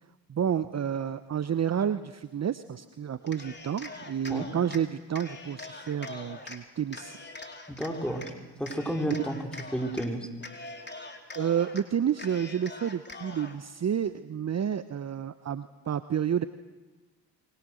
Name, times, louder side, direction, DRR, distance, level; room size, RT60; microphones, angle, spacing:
voice 1, 0.3-7.2 10.9-11.0 11.3-16.4, right 8 dB, 35° right, 13 dB, 1.0 m, -30 dB
Cheering, 3.2-4.8 5.1-6.6 6.9-8.3 8.7-10.1 10.4-11.8 12.2-13.6, left 3 dB, 25° left, 3.6 m, -43 dB
voice 2, 7.7-8.3 8.6-9.4 9.7-10.3, equal, ahead, 3 dB, 5.1 m, -31 dB
29.0 x 23.5 x 6.5 m, 1.2 s
hypercardioid pair, 60°, 44 cm